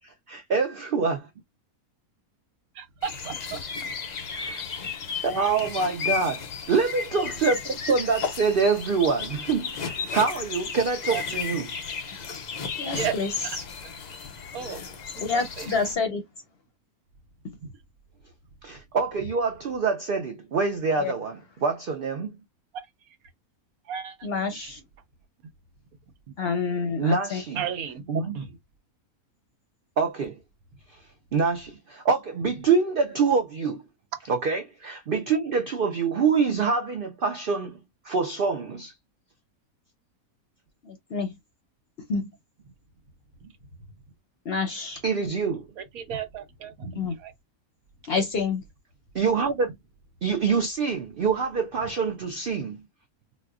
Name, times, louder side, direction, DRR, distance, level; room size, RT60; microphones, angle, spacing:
voice 1, 0.3-1.2 4.3-4.6 5.2-11.7 18.6-22.4 27.0-27.6 28.1-28.5 30.0-30.4 30.9-31.0 31.3-33.8 34.3-37.8 38.0-38.9 45.0-45.6 49.1-49.7 50.2-52.8, right 5 dB, 60° right, 0.5 m, -25 dB
voice 2, 2.7-3.6 11.1-11.2 12.9-13.2 14.5-14.8 15.1-15.7 17.6-17.7 22.7-22.9 23.9-24.2 24.5-24.7 27.5-28.5 45.8-47.3, right 8 dB, 80° right, 1.2 m, -34 dB
sound 1, 3.0-15.9, left 6 dB, 75° left, 0.4 m, -34 dB
voice 3, 12.8-13.3 13.6-13.7 15.2-16.2 21.0-21.1 24.2-24.8 26.4-27.4 40.8-41.3 42.1-42.3 44.4-45.0 46.9-47.1 48.0-48.6, left 4 dB, 55° left, 0.8 m, -28 dB
4.1 x 2.1 x 2.3 m
omnidirectional pair, 1.5 m